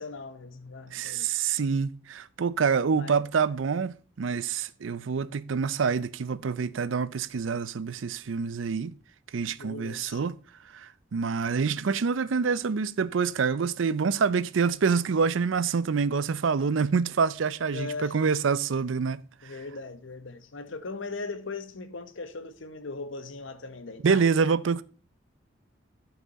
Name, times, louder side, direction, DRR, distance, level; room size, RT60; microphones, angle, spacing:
voice 1, 0.0-1.3 2.9-3.2 9.6-10.2 17.7-18.1 19.4-24.3, left 3 dB, 85° left, 1.0 m, -39 dB
voice 2, 0.9-8.9 9.3-10.3 10.7-19.2 24.0-24.8, right 5 dB, 85° right, 0.5 m, -26 dB
12.0 x 5.9 x 4.1 m
head